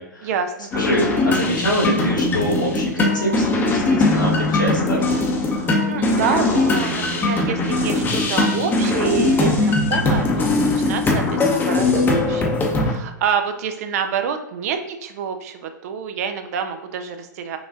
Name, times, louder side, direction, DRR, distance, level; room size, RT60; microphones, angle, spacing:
voice 1, 0.2-0.7 5.9-17.6, right 7 dB, 55° right, 8 dB, 0.4 m, -27 dB
voice 2, 0.7-5.0, right 1 dB, 90° left, -4 dB, 1.2 m, -25 dB
sound 1, 0.7-12.9, left 2 dB, 20° left, 0.7 m, -20 dB
5.9 x 2.4 x 2.4 m, 0.91 s
figure-of-eight pair, 105°, 10 cm